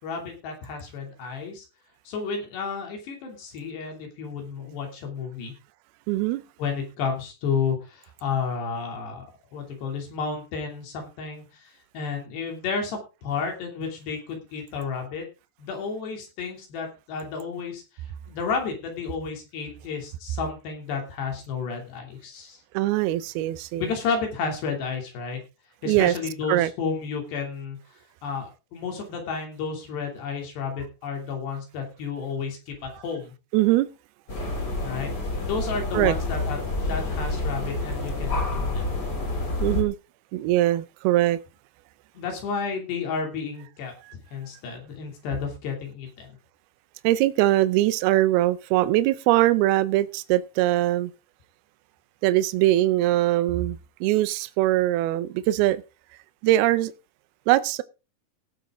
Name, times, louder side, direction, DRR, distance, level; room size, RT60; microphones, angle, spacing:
voice 1, 0.0-1.6 2.1-5.5 6.6-9.3 9.5-15.3 15.6-17.8 18.3-22.6 23.8-25.4 25.8-27.8 28.2-33.3 34.8-35.1 35.4-39.0 42.1-43.9 44.3-46.3, left 5 dB, 85° left, 5.0 m, -31 dB
voice 2, 6.1-6.4 22.7-23.9 25.9-26.1 26.5-26.7 33.5-33.9 35.9-36.1 39.6-40.0 40.3-41.4 47.0-51.1 52.2-55.8 56.4-56.9 57.5-57.8, right 15 dB, 80° right, 2.6 m, -22 dB
sound 1, 34.3-39.8, left 2 dB, 25° left, 3.4 m, -28 dB
17.0 x 8.1 x 3.7 m
omnidirectional pair, 4.7 m